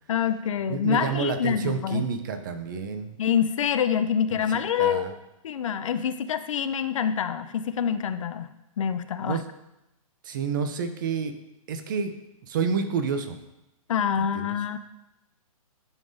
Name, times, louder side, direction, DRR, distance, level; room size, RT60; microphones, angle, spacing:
voice 1, 0.1-2.0 3.2-5.1 5.4-8.5 8.8-9.4 13.9-14.8, left 8 dB, 60° left, 11 dB, 0.5 m, -26 dB
voice 2, 0.7-3.2 4.8-5.1 9.3-9.4 10.2-11.3 11.7-12.1 12.5-13.4 14.2-14.6, right 6 dB, 35° right, 8 dB, 0.5 m, -29 dB
10.5 x 3.7 x 2.6 m, 0.91 s
hypercardioid pair, 165°, 18 cm